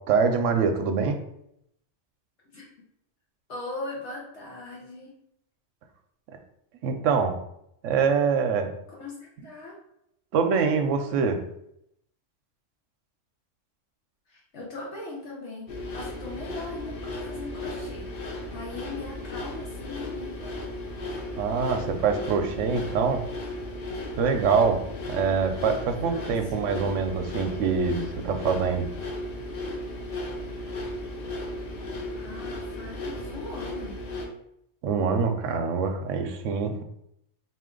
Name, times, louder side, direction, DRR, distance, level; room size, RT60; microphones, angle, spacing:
voice 1, 0.1-1.2 6.8-7.3 7.8-8.7 9.4-9.5 10.3-11.4 21.4-23.2 24.2-24.8 25.1-28.9 34.8-36.8, right 5 dB, 85° right, 6 dB, 1.0 m, -24 dB
voice 2, 3.5-5.1 8.9-9.7 14.3-18.1 18.5-20.6 26.0-26.7 32.1-34.0, left 2 dB, 70° left, -3 dB, 1.2 m, -40 dB
sound 1, 15.7-34.3, left 1 dB, 55° left, 0.8 m, -35 dB
4.1 x 2.5 x 3.7 m, 0.76 s
omnidirectional pair, 1.3 m